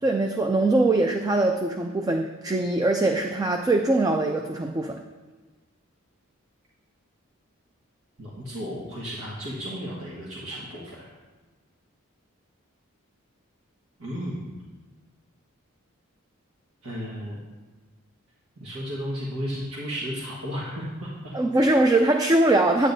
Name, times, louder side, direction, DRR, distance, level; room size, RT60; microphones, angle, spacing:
voice 1, 0.0-5.0 21.3-22.9, right 2 dB, 15° right, 4 dB, 0.3 m, -22 dB
voice 2, 8.2-11.1 14.0-14.5 16.8-17.4 18.6-21.4, equal, 90° right, -6 dB, 1.5 m, -34 dB
9.1 x 8.9 x 2.7 m, 1.3 s
head